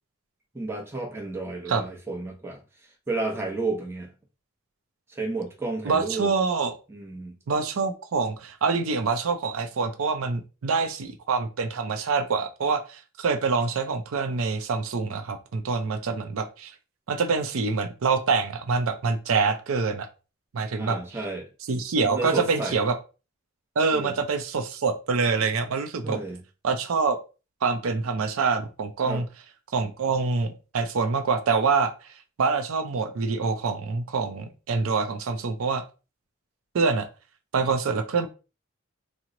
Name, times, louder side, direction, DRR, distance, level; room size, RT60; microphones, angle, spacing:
voice 1, 0.5-4.1 5.1-6.3 6.9-7.3 20.8-21.5 22.0-22.8 23.9-24.2 26.0-26.4 29.1-29.2, right 3 dB, 10° right, 0.7 m, -32 dB
voice 2, 5.8-6.7 7.5-16.7 17.1-20.1 20.5-21.0 21.7-23.0 23.8-26.2 26.6-27.2 27.6-29.3 29.7-35.8 36.7-37.1 37.5-38.3, right 4 dB, 80° right, 0.5 m, -25 dB
2.9 x 2.0 x 3.7 m
head